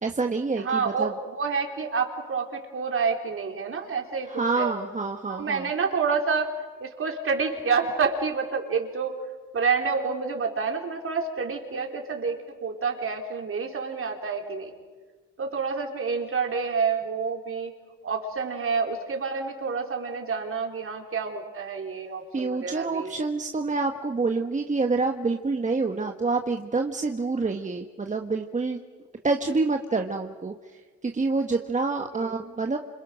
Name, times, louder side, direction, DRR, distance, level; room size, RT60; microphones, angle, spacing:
voice 1, 0.0-1.1 4.3-5.7 22.3-28.8 29.2-30.5 31.0-32.8, right 3 dB, 25° right, 4 dB, 1.5 m, -27 dB
voice 2, 0.5-4.7 5.3-9.2 9.5-14.7 15.4-17.7 18.0-23.1 25.9-26.1 32.1-32.4, right 5 dB, 45° right, 3 dB, 4.3 m, -28 dB
29.0 x 27.0 x 6.5 m, 1.4 s
cardioid pair, 90°, 30 cm